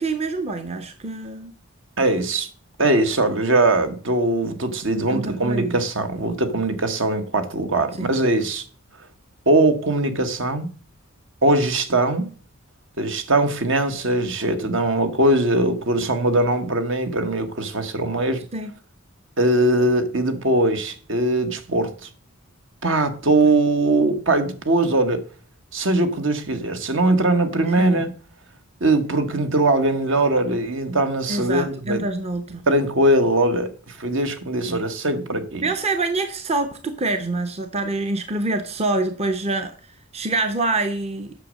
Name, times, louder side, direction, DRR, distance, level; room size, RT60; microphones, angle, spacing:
voice 1, 0.0-1.5 5.1-5.8 8.0-8.1 18.5-18.7 27.6-28.0 31.3-32.6 34.7-34.8 35.6-39.7 40.1-41.3, right 2 dB, 30° right, 0.8 m, -26 dB
voice 2, 2.0-2.5 2.8-8.7 9.5-10.7 11.4-12.3 13.0-18.4 19.4-22.1 22.8-25.2 25.7-28.1 28.8-32.0 32.7-35.6, right 2 dB, 60° right, 1.3 m, -21 dB
8.3 x 6.4 x 6.2 m
head